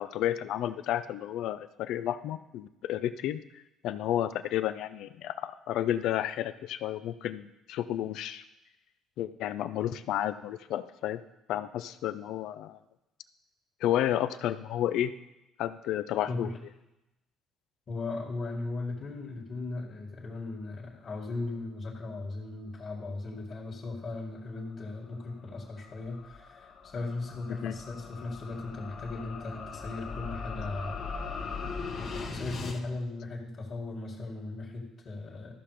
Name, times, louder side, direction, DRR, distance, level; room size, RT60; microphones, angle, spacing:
voice 1, 0.0-3.4 3.8-8.4 9.2-11.2 11.5-12.8 13.8-15.1 15.6-16.5 27.5-27.7, left 12 dB, 75° left, 12 dB, 0.5 m, -31 dB
voice 2, 17.9-31.0 32.0-35.5, left 3 dB, 45° left, -3 dB, 2.2 m, -37 dB
sound 1, 25.0-32.8, left 4 dB, 60° left, 1.5 m, -40 dB
13.5 x 5.9 x 5.0 m, 0.92 s
supercardioid pair, 75°, 0 cm